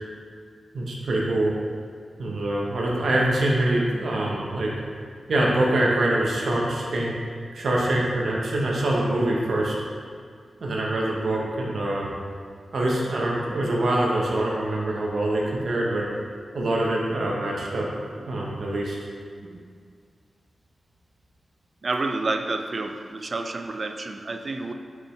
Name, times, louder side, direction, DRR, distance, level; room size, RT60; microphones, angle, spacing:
voice 1, 0.7-1.5 2.2-4.7 5.3-7.1 7.5-9.7 10.6-12.1 12.7-16.1 16.5-19.0 19.4-19.5, right 1 dB, 75° right, -3 dB, 1.0 m, -24 dB
voice 2, 21.8-24.7, right 3 dB, 40° right, 5 dB, 0.4 m, -29 dB
6.7 x 5.3 x 3.2 m, 2.1 s
wide cardioid pair, 160°, 0 cm